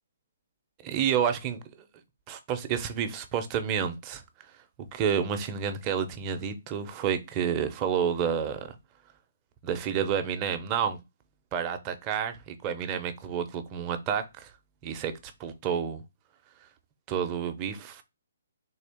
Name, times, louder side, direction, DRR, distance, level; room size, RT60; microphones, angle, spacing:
voice 1, 0.8-1.6 2.3-4.2 4.9-8.7 9.6-11.0 11.5-14.5 14.8-16.0 17.1-18.0, right 8 dB, 20° right, 0.6 m, -29 dB
3.7 x 2.4 x 3.4 m
hypercardioid pair, 160°, 0 cm